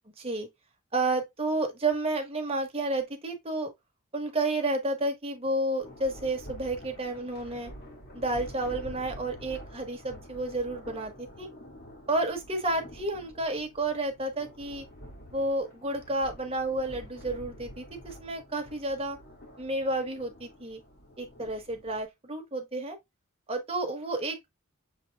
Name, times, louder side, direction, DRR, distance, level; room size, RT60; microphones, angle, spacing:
voice 1, 0.2-0.5 0.9-3.7 4.1-7.7 8.1-11.5 12.1-14.9 15.3-19.2 19.6-20.8 21.2-23.0 23.5-24.5, right 2 dB, 25° right, 1.2 m, -31 dB
Thunder, 5.8-22.0, equal, 50° left, 1.8 m, -48 dB
6.8 x 3.2 x 2.3 m
head